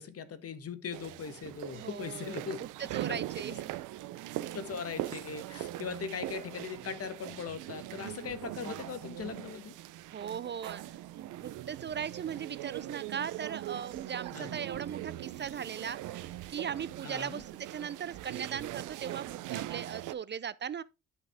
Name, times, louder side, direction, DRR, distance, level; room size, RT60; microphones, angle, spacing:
voice 1, 0.0-2.6 3.1-3.2 4.5-9.7 14.3-14.5 17.0-17.4, left 6 dB, 50° left, 1.3 m, -40 dB
sound 1, 0.9-20.1, right 15 dB, 85° right, 0.7 m, -41 dB
voice 2, 1.7-3.7 4.3-4.6 10.1-10.8 11.1-20.8, right 8 dB, 35° right, 0.4 m, -39 dB
10.0 x 5.8 x 3.5 m
cardioid pair, 90°, 30 cm